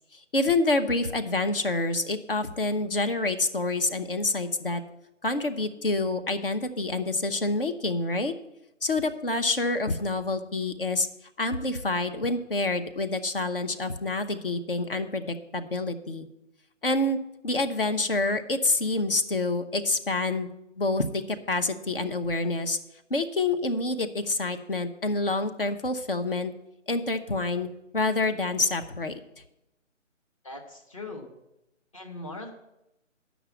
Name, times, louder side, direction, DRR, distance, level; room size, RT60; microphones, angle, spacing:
voice 1, 0.3-4.8 5.2-8.3 8.8-11.1 11.4-16.3 16.8-17.2 17.4-20.5 20.8-22.8 23.1-26.5 26.9-27.7 27.9-29.2, left 2 dB, 45° left, 8 dB, 0.9 m, -27 dB
voice 2, 30.4-31.3 31.9-32.5, left 2 dB, 25° left, 3 dB, 1.1 m, -40 dB
8.8 x 6.1 x 8.1 m, 0.88 s
figure-of-eight pair, 165°, 37 cm